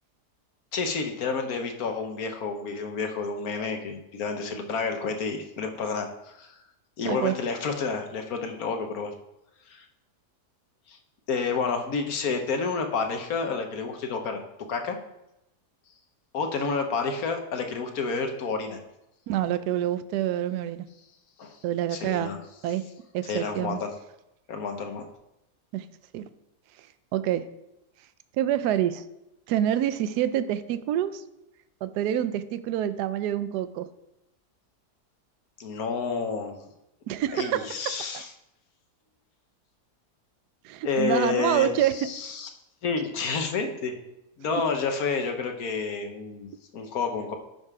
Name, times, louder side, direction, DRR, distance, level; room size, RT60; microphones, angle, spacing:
voice 1, 0.7-6.6 7.0-9.1 9.7-9.9 10.9-11.0 11.3-14.4 14.7-15.0 16.3-18.8 21.4-21.6 21.9-22.4 23.3-23.9 24.5-25.1 35.6-36.7 37.3-38.3 40.8-42.5 42.8-44.0 44.4-47.4, left 4 dB, 65° left, 5 dB, 1.4 m, -30 dB
voice 2, 19.3-20.8 21.6-22.3 22.6-22.8 23.1-23.8 25.7-25.9 26.1-26.2 27.1-27.4 28.4-29.0 29.5-31.2 31.8-33.9 37.1-37.7 40.6-41.9, right 11 dB, 80° right, 13 dB, 1.1 m, -26 dB
11.0 x 5.4 x 4.8 m, 0.89 s
omnidirectional pair, 1.7 m